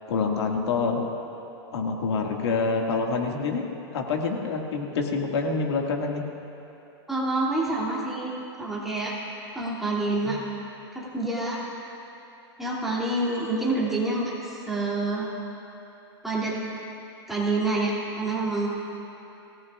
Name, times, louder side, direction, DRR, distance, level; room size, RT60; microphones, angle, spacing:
voice 1, 0.1-1.1 1.7-3.7 3.9-6.2 10.2-10.4, left 4 dB, 80° left, 1 dB, 1.9 m, -26 dB
voice 2, 7.1-8.3 8.6-9.1 9.5-10.4 10.9-11.6 12.6-15.3 16.2-16.5 17.3-18.7, right 2 dB, ahead, -7 dB, 2.6 m, -27 dB
24.0 x 17.0 x 2.4 m, 2.9 s
supercardioid pair, 150°, 14 cm